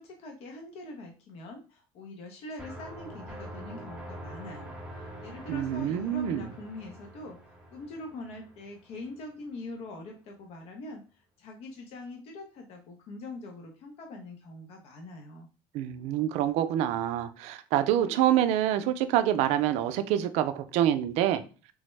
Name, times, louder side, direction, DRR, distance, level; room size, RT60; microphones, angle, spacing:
voice 1, 0.0-15.5, left 2 dB, 60° left, 0.6 m, -43 dB
sound 1, 2.6-9.3, right 1 dB, 10° right, 0.8 m, -45 dB
voice 2, 5.5-6.5 15.7-21.4, right 11 dB, 75° right, 0.4 m, -26 dB
3.4 x 2.0 x 3.1 m
supercardioid pair, 90°, 11 cm